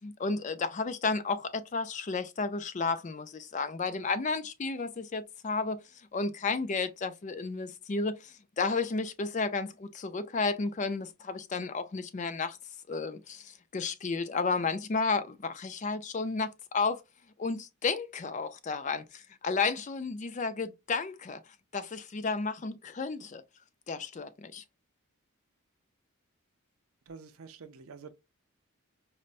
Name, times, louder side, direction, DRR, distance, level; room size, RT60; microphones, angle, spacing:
voice 1, 0.0-5.8 6.1-12.6 12.9-17.0 17.4-21.4 21.7-23.4 23.9-24.6, left 4 dB, 35° left, 0.4 m, -32 dB
voice 2, 27.1-28.1, right 5 dB, 75° right, 0.5 m, -47 dB
5.3 x 2.1 x 2.4 m
head